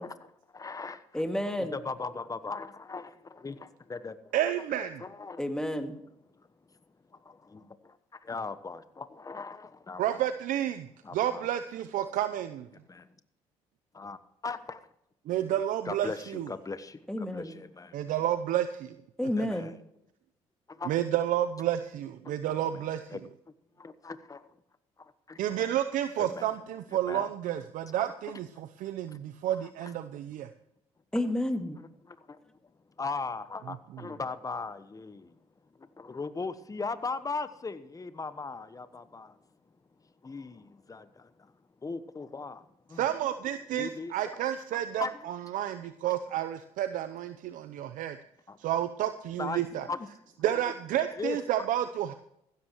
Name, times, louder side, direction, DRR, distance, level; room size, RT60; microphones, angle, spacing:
voice 1, 0.6-0.9 1.7-4.5 5.0-5.4 7.1-10.2 11.0-11.5 12.9-13.1 13.9-14.2 14.4-14.9 15.8-18.0 19.5-19.7 20.7-21.0 22.7-22.8 23.1-23.2 23.8-24.5 25.0-25.4 26.2-26.5 27.1-27.3 27.9-28.0 29.5-29.9 32.1-32.4 33.0-35.3 35.8-39.4 40.2-41.5 41.8-43.1 43.7-44.1 44.7-45.3 46.0-46.1 48.5-48.6 49.4-49.6 49.9-50.1 50.5-50.6 51.1-51.4, left 4 dB, 25° left, 1.1 m, -38 dB
voice 2, 1.1-1.8 5.4-6.0 17.1-17.6 19.2-19.7 31.1-31.8, left 1 dB, 5° left, 2.1 m, -30 dB
voice 3, 4.3-5.0 10.0-10.9 11.1-12.7 15.3-16.5 17.9-18.9 20.9-23.2 25.4-30.5 43.0-48.2 48.6-49.9 50.4-52.1, right 11 dB, 70° right, 0.7 m, -30 dB
15.5 x 13.5 x 3.1 m
supercardioid pair, 60°, 14 cm